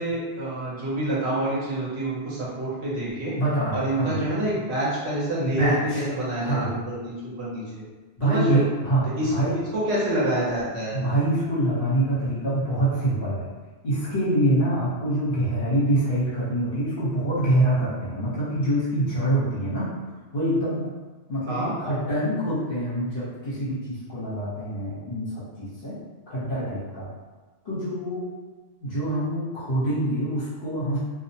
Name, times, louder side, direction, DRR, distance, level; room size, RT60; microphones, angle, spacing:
voice 1, 0.0-3.3 3.7-7.8 8.2-8.6 9.2-9.3 9.7-11.0 21.5-21.7, right 1 dB, 65° right, -7 dB, 1.0 m, -27 dB
voice 2, 3.4-4.2 5.6-6.0 6.4-6.7 8.2-9.5 10.9-13.5 13.8-19.9 20.3-20.9 21.3-26.0 26.3-27.1 27.6-28.2 28.8-31.0, right 1 dB, 55° left, -9 dB, 1.0 m, -25 dB
2.4 x 2.1 x 2.7 m, 1.3 s
omnidirectional pair, 1.2 m